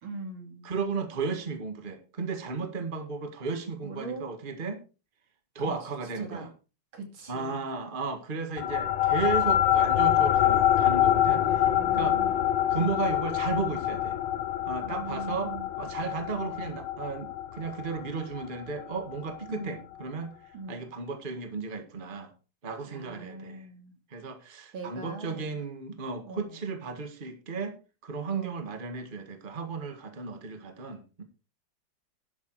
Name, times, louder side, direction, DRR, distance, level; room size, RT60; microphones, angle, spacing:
voice 1, 0.0-0.7 3.8-4.3 5.6-5.7 6.2-6.5 6.9-7.6 11.4-12.4 14.8-15.7 19.5-19.8 20.5-20.9 22.9-23.9 24.7-25.6 26.3-26.6 28.3-28.7, right 3 dB, 75° right, 5 dB, 3.3 m, -41 dB
voice 2, 0.6-4.8 5.5-6.5 7.3-12.2 12.7-14.2 14.7-15.5 15.8-22.3 22.6-23.7 24.1-27.7 28.0-31.2, right 4 dB, 25° right, 7 dB, 1.8 m, -34 dB
sound 1, 8.6-19.4, left 12 dB, 80° left, 1.7 m, -26 dB
11.5 x 9.8 x 4.7 m, 0.33 s
omnidirectional pair, 2.3 m